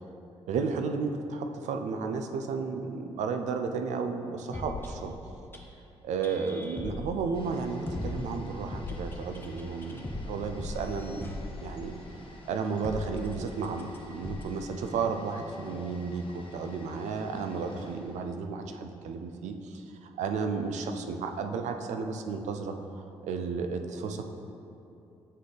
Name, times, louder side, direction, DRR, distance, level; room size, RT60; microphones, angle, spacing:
voice 1, 0.5-5.1 6.0-11.3 11.6-12.0 12.5-22.7 23.2-24.3, right 5 dB, 80° right, 6 dB, 0.4 m, -33 dB
sound 1, 4.5-5.6 6.2-7.5 7.9-12.0 12.8-14.0 14.2-14.4, left 2 dB, 20° left, 0.8 m, -38 dB
sound 2, 7.3-19.1 19.3-19.4, left 2 dB, 45° left, 0.9 m, -50 dB
7.4 x 4.1 x 3.3 m, 2.8 s
cardioid pair, 60°, 12 cm